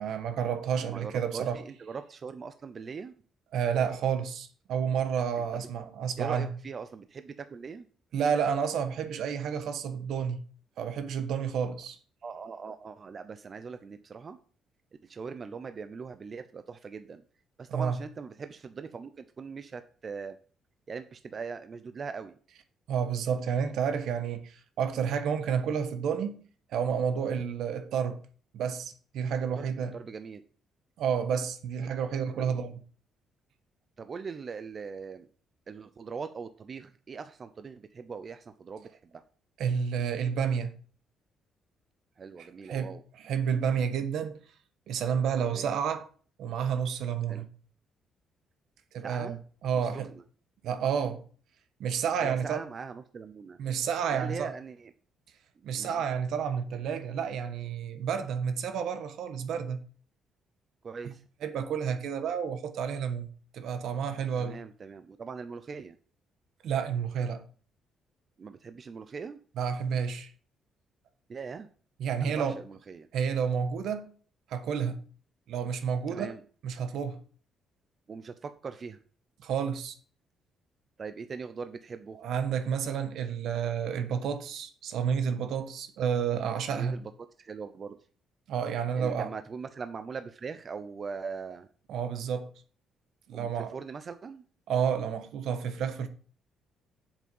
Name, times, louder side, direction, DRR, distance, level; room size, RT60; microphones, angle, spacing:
voice 1, 0.0-1.6 3.5-6.5 8.1-10.4 10.8-12.0 17.7-18.0 22.9-26.4 26.7-28.2 28.5-29.9 31.0-32.7 39.6-40.7 42.4-43.0 43.2-44.4 44.9-46.1 46.4-47.4 48.9-49.3 49.6-50.1 50.6-51.2 51.8-52.6 53.6-54.5 55.6-59.8 61.4-63.3 63.5-64.6 66.6-67.4 69.6-70.3 72.0-72.6 73.1-74.1 74.5-75.0 75.5-76.3 76.6-77.2 79.4-80.0 82.2-87.0 88.5-89.3 91.9-92.5 93.3-93.7 94.7-96.1, right 7 dB, 75° right, 1.3 m, -30 dB
voice 2, 0.7-3.1 5.4-5.7 6.2-7.9 12.2-14.4 15.0-17.2 17.6-20.4 20.9-22.4 29.6-30.4 32.1-32.6 34.0-35.3 35.7-39.2 42.2-43.0 45.4-45.7 47.3-47.5 49.0-49.4 49.7-50.2 52.2-53.6 54.1-54.9 55.6-56.0 60.8-61.2 64.4-66.0 68.4-69.4 71.3-71.7 72.2-73.1 76.1-76.4 78.1-79.0 81.0-82.2 86.7-87.1 87.4-88.0 89.0-91.7 93.3-94.4, right 5 dB, 35° right, 0.6 m, -41 dB
7.7 x 7.4 x 5.4 m
cardioid pair, 130°, 0 cm